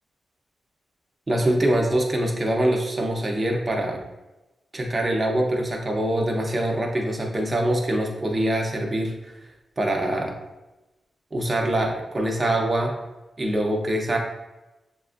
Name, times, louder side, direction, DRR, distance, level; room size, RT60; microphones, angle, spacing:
voice 1, 1.3-4.0 4.7-9.3 9.8-10.3 11.3-13.0 13.4-14.2, right 1 dB, 20° right, 1 dB, 0.6 m, -24 dB
6.9 x 2.4 x 2.5 m, 1.0 s
wide cardioid pair, 175°, 0 cm